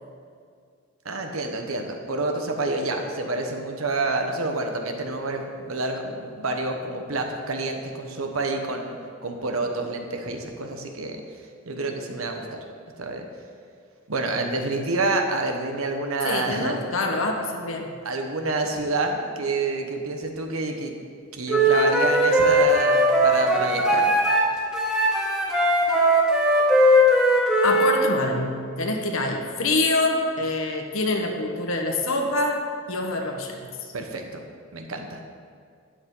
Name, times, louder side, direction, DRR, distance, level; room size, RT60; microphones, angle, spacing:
voice 1, 1.0-11.2 11.6-12.6 13.0-13.2 14.1-16.8 18.0-20.9 21.3-24.1 33.9-34.4 34.7-35.2, right 2 dB, 90° right, 4 dB, 1.2 m, -28 dB
voice 2, 16.2-17.9 27.6-33.9, left 2 dB, 80° left, 2 dB, 1.3 m, -25 dB
Wind instrument woodwind instrument, 21.5-24.4 24.7-27.9, equal, 5° right, 1.4 m, -19 dB
12.5 x 8.5 x 3.9 m, 2.2 s
head